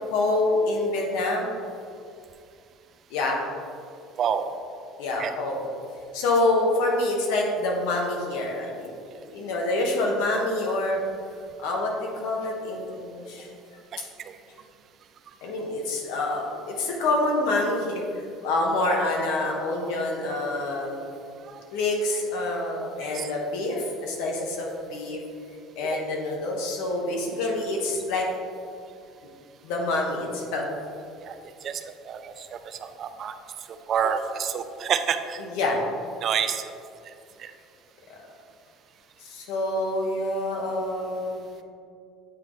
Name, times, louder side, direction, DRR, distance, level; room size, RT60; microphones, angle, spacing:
voice 1, 0.1-1.5 3.1-3.4 5.0-5.6 6.1-8.9 9.3-11.0 11.6-13.5 15.4-21.0 21.7-25.2 25.8-28.3 29.6-30.7 35.5-35.8 39.2-41.4, left 2 dB, 80° left, 0 dB, 1.2 m, -26 dB
voice 2, 4.2-4.5 5.2-5.3 13.9-14.0 14.2-14.4 21.4-21.6 23.0-23.3 25.9-26.0 31.2-33.3 33.7-35.4 36.2-36.7 37.1-37.2 37.4-37.5, right 7 dB, 40° right, 9 dB, 0.3 m, -29 dB
8.5 x 3.9 x 3.1 m, 2.4 s
cardioid pair, 135°, 0 cm